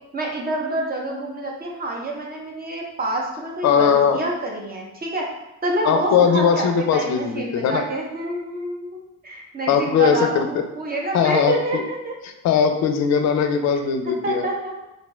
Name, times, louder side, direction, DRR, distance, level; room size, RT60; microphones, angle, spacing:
voice 1, 0.1-5.3 5.6-12.1 14.0-14.8, right 2 dB, 30° right, -1 dB, 0.7 m, -27 dB
voice 2, 3.6-4.2 5.8-7.8 9.7-10.6 11.1-11.8 12.4-14.5, left 7 dB, 65° left, 6 dB, 0.4 m, -19 dB
2.7 x 2.2 x 3.0 m, 0.93 s
cardioid pair, 90°, 30 cm